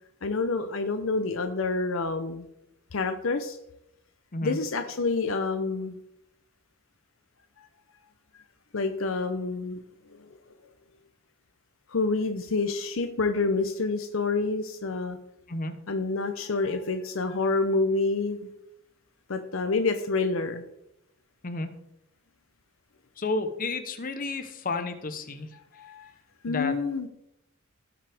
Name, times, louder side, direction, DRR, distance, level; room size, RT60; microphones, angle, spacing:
voice 1, 0.2-2.5 2.9-3.6 4.4-6.0 8.7-9.8 10.1-10.4 11.9-15.2 15.9-18.5 19.3-20.6 25.7-26.1 26.4-27.1, left 3 dB, 70° left, 8 dB, 0.7 m, -28 dB
voice 2, 23.2-25.5 26.5-26.7, left 3 dB, 40° left, 8 dB, 1.0 m, -31 dB
17.5 x 5.9 x 3.5 m, 0.81 s
head